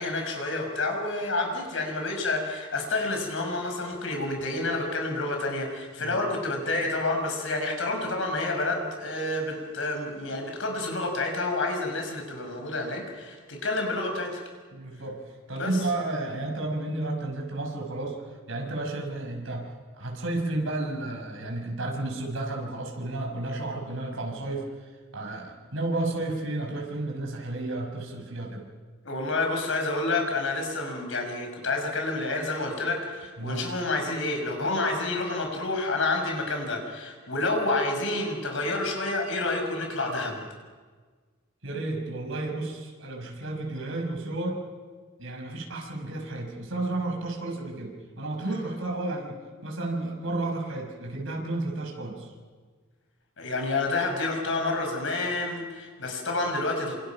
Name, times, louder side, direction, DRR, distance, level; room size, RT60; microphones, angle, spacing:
voice 1, 0.0-14.4 15.6-15.7 29.0-40.4 53.4-57.0, left 2 dB, 70° left, 3 dB, 6.0 m, -29 dB
voice 2, 14.7-15.2 15.5-18.2 18.5-19.7 20.0-24.7 25.1-28.6 33.4-33.7 41.6-44.6 45.2-52.3, right 2 dB, 75° right, 1 dB, 6.2 m, -32 dB
28.0 x 26.5 x 6.0 m, 1.5 s
head